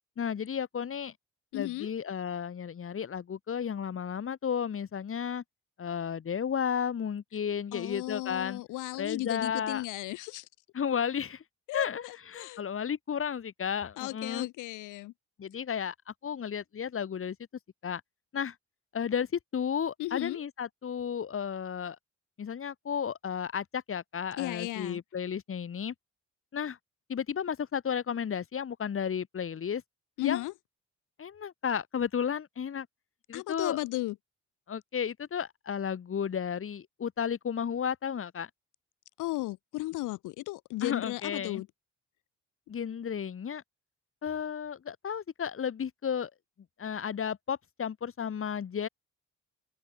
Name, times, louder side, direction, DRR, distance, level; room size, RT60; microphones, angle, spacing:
voice 1, 0.2-1.1 1.5-5.4 5.8-8.6 9.0-9.8 10.7-11.4 11.7-12.0 12.3-14.5 15.4-17.4 17.8-18.0 18.3-18.5 18.9-22.0 22.4-25.9 26.5-26.8 27.1-29.8 30.2-30.4 31.2-32.9 33.3-33.8 34.7-38.5 40.8-41.6 42.7-43.6 44.2-46.3 46.8-48.9, left 7 dB, 45° left, 2.3 m, -33 dB
voice 2, 1.5-1.9 7.7-10.5 11.7-12.6 14.0-15.1 20.0-20.4 24.4-25.0 30.2-30.5 33.3-34.2 39.2-41.7, left 18 dB, 90° left, 0.7 m, -35 dB
cardioid pair, 90°, 30 cm